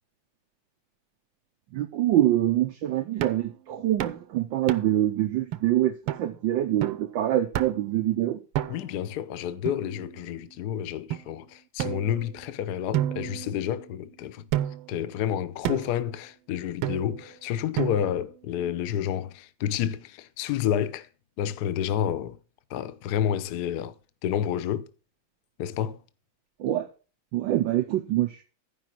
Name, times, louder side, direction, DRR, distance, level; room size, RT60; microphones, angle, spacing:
voice 1, 1.7-8.4 26.6-26.9 27.3-28.4, right 13 dB, 70° right, 1.3 m, -25 dB
sound 1, 3.2-3.5 4.0-4.2 4.7-5.1 5.5-5.6 6.1-6.3 6.8-7.1 7.5-7.9 8.5-9.0 9.7-10.4 11.1-11.2 11.8-12.5 12.9-14.0 14.5-15.0 15.6-16.0 16.8-17.3 17.8-18.3, right 12 dB, 90° right, 1.6 m, -31 dB
voice 2, 8.7-14.5 14.9-21.1 21.4-22.4 22.7-23.9 24.2-24.9 25.6-26.0, left 10 dB, 75° left, 0.9 m, -29 dB
13.5 x 5.1 x 5.9 m
omnidirectional pair, 2.4 m